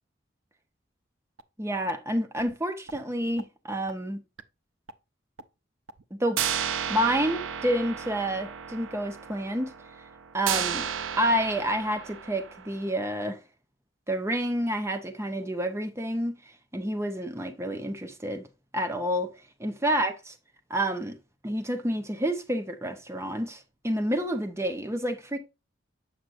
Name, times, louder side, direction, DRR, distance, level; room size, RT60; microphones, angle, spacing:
sound 1, 1.4-1.5 1.9-2.0 2.4-2.5 2.9-3.0 3.4-3.5 3.9-4.0 4.4-4.5 4.9-5.0 5.4-5.5 5.9-6.0 6.4-13.0, right 8 dB, 80° right, 0.6 m, -34 dB
voice 1, 1.6-4.2 6.1-6.4 6.9-9.7 10.3-10.9 11.2-13.4 14.1-16.4 16.7-18.5 18.7-19.3 19.6-20.3 20.7-21.2 21.4-25.4, right 1 dB, 15° right, 0.7 m, -29 dB
7.6 x 5.9 x 2.5 m
head